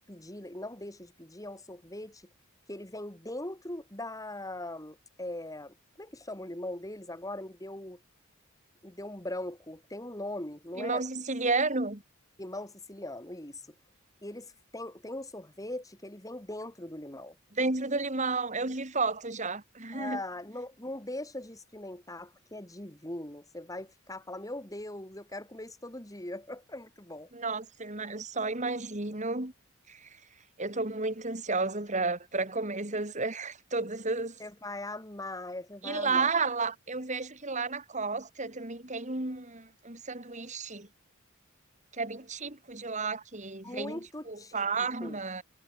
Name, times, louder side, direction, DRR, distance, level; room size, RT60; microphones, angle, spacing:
voice 1, 0.1-2.2 2.7-8.0 8.8-11.0 12.4-13.6 14.2-17.4 19.9-27.3 34.4-36.3 43.6-45.2, left 1 dB, 15° left, 3.3 m, -40 dB
voice 2, 10.8-12.0 17.5-20.2 27.3-29.5 29.9-30.1 30.6-34.3 35.8-40.9 42.0-44.0 44.3-45.4, right 3 dB, 35° right, 2.9 m, -32 dB
head